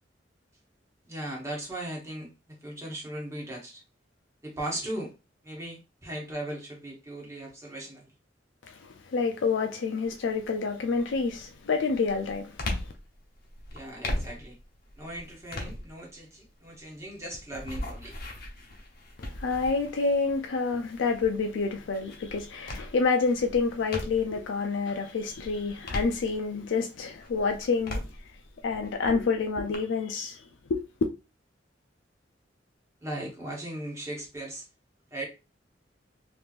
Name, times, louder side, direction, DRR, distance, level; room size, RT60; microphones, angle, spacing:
voice 1, 1.1-3.8 4.4-5.1 5.4-8.1 12.6-12.8 13.7-14.6 15.0-18.1 33.0-34.6 35.1-35.3, right 1 dB, 15° right, 1.1 m, -38 dB
voice 2, 8.7-12.6 19.2-28.0 28.6-30.4 30.7-30.8, left 4 dB, 85° left, 0.4 m, -28 dB
sound 1, 10.1-10.5 10.9-24.5 24.9-26.8 27.2-29.8, left 1 dB, 55° left, 0.8 m, -39 dB
3.5 x 2.9 x 2.4 m
head